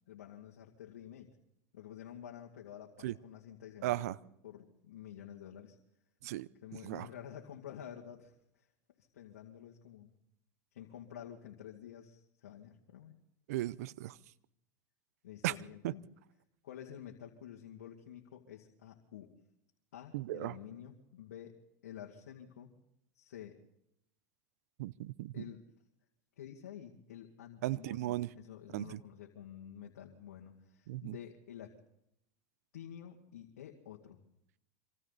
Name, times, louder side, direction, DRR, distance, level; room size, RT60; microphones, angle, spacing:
voice 1, 0.1-1.3 1.7-4.1 4.4-5.8 6.6-8.7 9.1-10.1 10.7-13.1 15.2-16.0 16.6-19.3 19.9-21.6 21.8-22.7 23.1-23.6 25.3-25.6 26.4-31.7 32.7-34.3, left 10 dB, 90° left, 2.2 m, -50 dB
voice 2, 3.8-4.2 6.2-6.5 6.8-7.1 13.5-14.2 15.4-15.5 15.8-15.9 20.1-20.5 24.8-25.4 27.6-28.3 28.7-29.0 30.9-31.1, right 16 dB, 80° right, 0.7 m, -36 dB
26.5 x 25.0 x 4.1 m
supercardioid pair, 105°, 8 cm